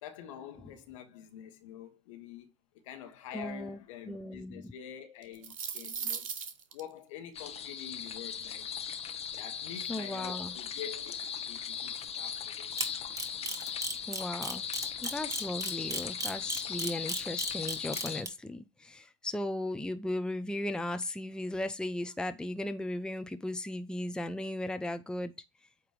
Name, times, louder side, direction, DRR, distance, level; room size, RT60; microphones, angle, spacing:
voice 1, 0.0-2.5 2.8-6.3 6.7-8.7 9.3-11.1 11.5-12.7, left 9 dB, 70° left, 1.4 m, -46 dB
voice 2, 3.3-3.8 4.1-4.7 9.9-10.5 14.1-14.7 15.0-25.3, left 1 dB, 5° left, 0.6 m, -36 dB
sound 1, 5.2-6.8, right 7 dB, 85° right, 0.8 m, -37 dB
sound 2, 7.3-18.2, left 8 dB, 40° left, 1.0 m, -38 dB
Camera, 12.8-18.3, right 2 dB, 20° right, 1.6 m, -34 dB
8.6 x 3.0 x 5.0 m
hypercardioid pair, 75°, 17 cm